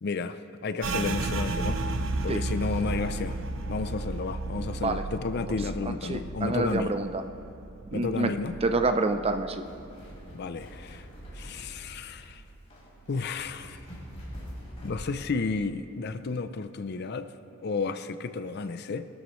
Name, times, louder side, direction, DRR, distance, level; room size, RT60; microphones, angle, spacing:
voice 1, 0.0-1.8 2.2-3.4 3.7-6.9 7.9-8.5 10.3-11.1 11.3-12.4 13.1-13.8 14.8-19.1, left 4 dB, 55° left, 11 dB, 0.5 m, -32 dB
sound 1, 0.8-10.2 10.5-11.7 12.1-12.5 13.0-13.6, right 2 dB, 70° right, 0.8 m, -34 dB
voice 2, 6.1-7.2 7.9-8.3 8.6-9.6, right 3 dB, 30° right, 8 dB, 0.5 m, -27 dB
sound 2, 9.3-15.4, equal, 35° left, 3.9 m, -45 dB
20.5 x 13.0 x 3.1 m, 2.6 s
head